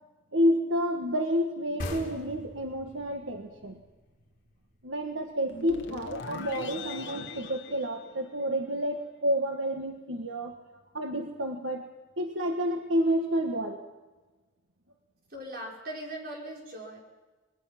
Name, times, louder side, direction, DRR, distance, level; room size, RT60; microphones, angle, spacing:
voice 1, 0.3-3.8 4.8-10.5 10.9-11.9 12.2-13.8, equal, 80° right, 3 dB, 1.6 m, -29 dB
sound 1, 1.8-5.2, left 1 dB, 45° left, 4.4 m, -41 dB
sound 2, 5.5-8.8, left 4 dB, 65° left, 1.5 m, -40 dB
voice 2, 15.3-17.0, right 1 dB, 50° right, -2 dB, 5.8 m, -40 dB
25.5 x 21.5 x 6.0 m, 1.2 s
head